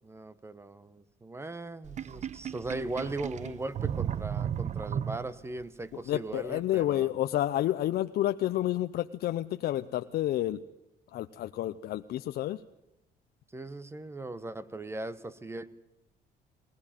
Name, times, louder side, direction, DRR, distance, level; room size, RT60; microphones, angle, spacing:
voice 1, 0.0-7.1 13.5-15.7, right 2 dB, 15° right, 15 dB, 1.2 m, -38 dB
Sink (filling or washing), 1.8-5.6, right 9 dB, 45° right, 0.8 m, -34 dB
voice 2, 6.1-10.6 11.1-12.6, left 13 dB, 70° left, 9 dB, 0.7 m, -30 dB
20.0 x 19.0 x 9.0 m, 0.90 s
cardioid pair, 110°, 17 cm